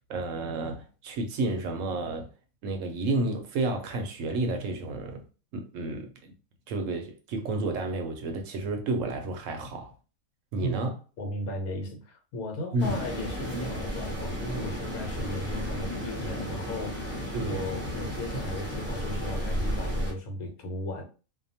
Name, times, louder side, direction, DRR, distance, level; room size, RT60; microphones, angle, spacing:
voice 1, 0.1-2.3 2.6-5.2 5.5-6.3 6.7-9.9 10.5-10.9 12.7-13.0 17.3-17.7, right 2 dB, 70° right, 0.9 m, -31 dB
voice 2, 11.2-21.0, left 1 dB, 80° left, 1.2 m, -36 dB
sound 1, 12.8-20.1, equal, 10° right, 0.8 m, -33 dB
2.7 x 2.1 x 2.7 m
omnidirectional pair, 1.5 m